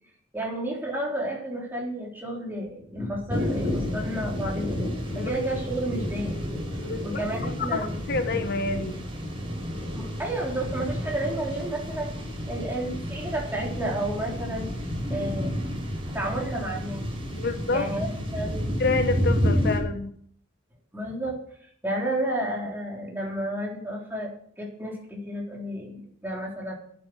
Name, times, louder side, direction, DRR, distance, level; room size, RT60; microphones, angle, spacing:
voice 1, 0.3-4.7 5.2-6.4 7.0-8.0 9.9-12.1 12.5-14.7 15.1-15.5 16.0-17.1 17.7-18.7 20.9-21.3 21.6-24.3 24.6-26.7, right 1 dB, 10° right, -2 dB, 3.8 m, -31 dB
sound 1, 3.3-19.8, equal, 25° right, 4.8 m, -30 dB
voice 2, 6.8-9.1 17.3-17.9 18.8-20.1, left 3 dB, 55° left, 8 dB, 1.0 m, -28 dB
11.5 x 9.8 x 6.4 m, 0.63 s
head